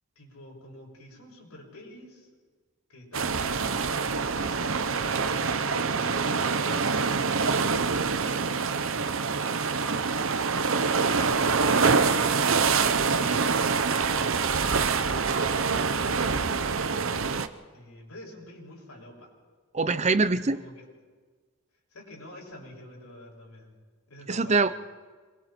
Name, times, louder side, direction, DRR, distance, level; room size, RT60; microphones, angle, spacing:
voice 1, 0.1-2.3 2.9-4.7 5.5-8.1 10.4-14.3 17.7-19.3 20.5-20.8 21.9-23.7 24.1-24.8, left 1 dB, 90° left, -2 dB, 6.8 m, -47 dB
sound 1, 3.1-17.5, right 5 dB, 60° right, 0.8 m, -25 dB
voice 2, 19.7-20.6 24.3-24.7, right 3 dB, 30° right, 13 dB, 0.6 m, -23 dB
27.5 x 22.5 x 4.5 m, 1.5 s
head